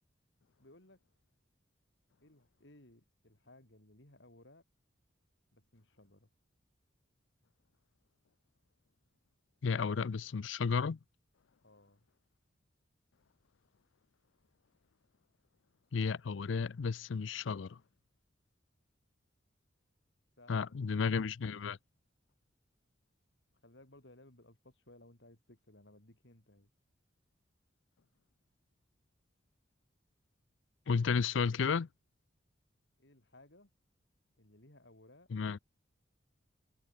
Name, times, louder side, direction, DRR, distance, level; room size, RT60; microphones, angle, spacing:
voice 1, 0.6-1.0 2.2-4.6 5.5-6.3 9.9-10.3 11.6-12.1 20.4-21.1 23.5-26.7 33.0-33.7 34.4-35.3, left 1 dB, 65° left, 4.3 m, -60 dB
voice 2, 9.6-11.0 15.9-17.8 20.5-21.8 30.9-31.9 35.3-35.6, left 5 dB, 85° left, 0.5 m, -33 dB
head